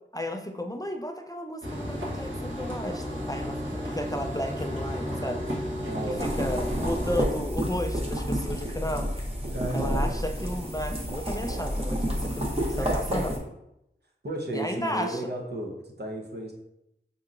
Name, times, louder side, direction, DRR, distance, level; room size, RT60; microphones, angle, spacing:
voice 1, 0.1-5.4 6.4-9.1 9.7-12.5 12.8-13.4 14.5-15.2, left 1 dB, 20° left, 4 dB, 0.3 m, -33 dB
sound 1, 1.6-7.2, equal, 75° right, 1.3 m, -33 dB
voice 2, 5.8-6.6 9.5-10.1 12.7-13.4 14.2-16.5, right 1 dB, 55° right, -1 dB, 0.8 m, -34 dB
sound 2, 6.2-13.4, equal, 30° right, 0.9 m, -30 dB
5.3 x 2.7 x 2.5 m, 0.86 s
wide cardioid pair, 45°, 20 cm